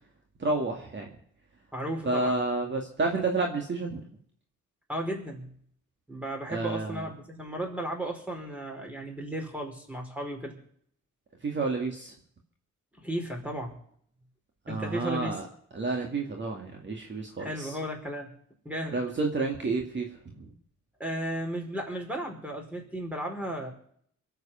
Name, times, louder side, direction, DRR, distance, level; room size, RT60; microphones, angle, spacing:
voice 1, 0.4-1.1 2.0-4.0 6.5-7.1 11.4-12.1 14.7-15.4 15.7-17.7 18.9-20.1 20.3-20.5, right 3 dB, 40° right, 1 dB, 2.2 m, -30 dB
voice 2, 1.7-2.4 4.9-5.5 6.1-10.6 13.0-13.8 14.7-15.4 17.4-18.3 18.6-19.0 21.0-23.7, right 1 dB, 5° right, 1 dB, 4.9 m, -34 dB
24.0 x 8.3 x 5.7 m, 0.63 s
cardioid pair, 90°, 30 cm